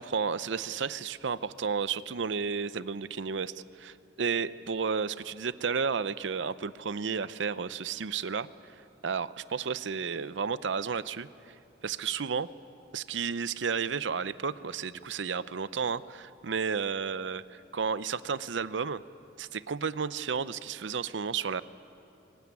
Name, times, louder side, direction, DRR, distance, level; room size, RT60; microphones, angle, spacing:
voice 1, 0.0-8.7 9.0-11.5 11.8-12.5 12.9-19.0 19.4-21.6, right 6 dB, 80° right, 16 dB, 0.6 m, -32 dB
23.5 x 18.5 x 9.6 m, 2.7 s
head